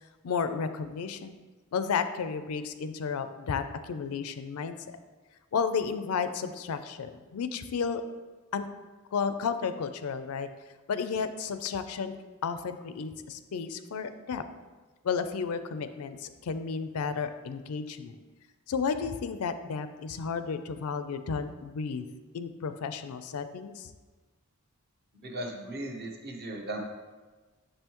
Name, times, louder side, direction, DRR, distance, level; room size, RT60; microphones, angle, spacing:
voice 1, 0.2-1.4 1.7-5.0 5.5-8.0 8.5-8.7 9.1-10.5 10.9-12.1 12.4-14.4 15.0-18.2 18.7-22.0 22.3-23.9, left 5 dB, 80° left, 10 dB, 0.4 m, -32 dB
voice 2, 25.1-26.8, right 1 dB, 45° right, 1 dB, 0.9 m, -37 dB
6.7 x 5.5 x 3.0 m, 1.3 s
head